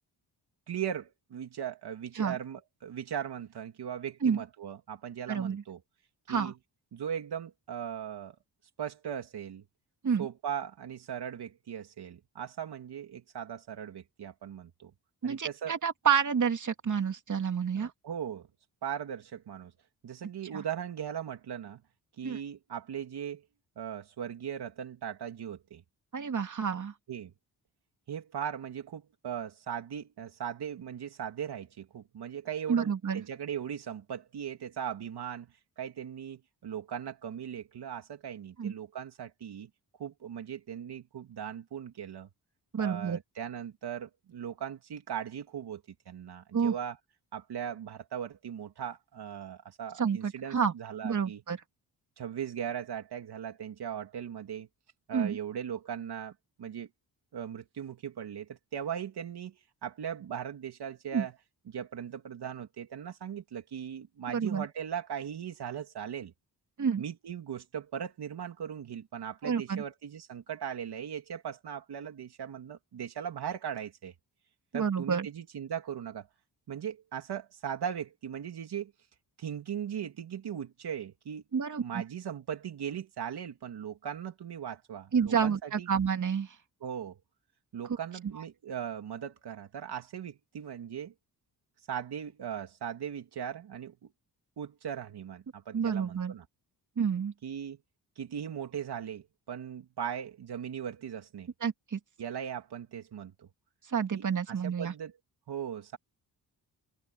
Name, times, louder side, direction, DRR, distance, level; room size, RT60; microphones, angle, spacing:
voice 1, 0.7-5.8 6.3-6.5 6.9-8.4 8.8-9.6 10.2-14.9 15.2-15.8 17.7-18.5 18.8-19.7 20.0-21.8 22.2-23.4 23.8-25.8 27.1-27.3 28.1-39.7 40.0-42.3 42.8-47.0 47.3-51.4 52.2-54.7 55.1-56.3 56.6-56.9 57.3-61.3 61.7-66.3 67.0-74.1 74.7-76.3 76.7-78.9 79.4-81.4 81.8-85.9 86.8-87.2 87.7-91.1 91.9-94.1 94.6-96.4 97.4-97.8 98.2-101.5 102.2-103.5 104.1-105.1 105.5-106.0, right 8 dB, 75° right, 3.2 m, -39 dB
voice 2, 5.3-5.6 6.3-6.5 10.0-10.3 15.2-17.9 20.5-20.6 22.2-22.4 26.1-26.9 32.7-33.2 38.6-38.7 42.7-43.2 46.5-46.7 50.0-50.7 51.0-51.6 55.1-55.4 61.1-61.3 64.3-64.7 66.8-67.0 69.4-69.8 74.7-75.3 81.5-82.0 85.1-86.5 95.7-96.3 97.0-97.3 101.6-102.0 103.9-104.9, right 7 dB, 50° right, 2.7 m, -29 dB
cardioid pair, 100°, 40 cm